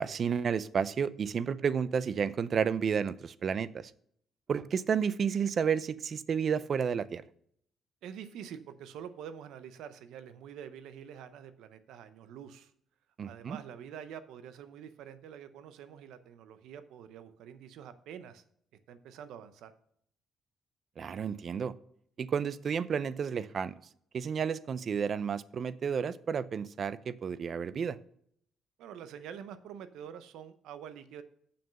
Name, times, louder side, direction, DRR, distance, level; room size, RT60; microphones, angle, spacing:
voice 1, 0.0-3.9 4.5-7.2 13.2-13.6 21.0-21.7 22.2-23.7 24.1-28.0, right 7 dB, 50° right, 17 dB, 0.5 m, -31 dB
voice 2, 8.0-12.7 13.2-18.4 18.9-19.7 28.8-31.2, right 8 dB, 85° right, 12 dB, 0.7 m, -46 dB
7.0 x 6.3 x 5.3 m, 0.66 s
cardioid pair, 90°, 0 cm